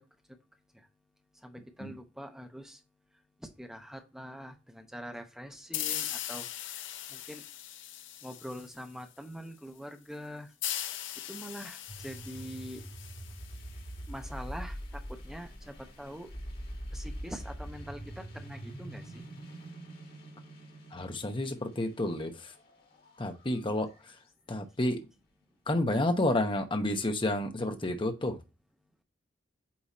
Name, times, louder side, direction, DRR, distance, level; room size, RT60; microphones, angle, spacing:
voice 1, 1.4-2.8 3.4-6.5 7.1-7.4 8.2-10.5 11.3-12.8 14.1-16.3 16.9-19.2, equal, 5° right, 5 dB, 0.9 m, -44 dB
sound 1, 5.7-9.1 10.6-14.1, left 12 dB, 70° left, 0.6 m, -39 dB
sound 2, 11.9-24.3, equal, 55° left, 2.2 m, -44 dB
voice 2, 20.9-22.5 23.2-24.2 24.5-25.0 25.7-28.4, left 1 dB, 25° left, 6 dB, 0.9 m, -30 dB
8.7 x 3.0 x 4.1 m, 0.28 s
head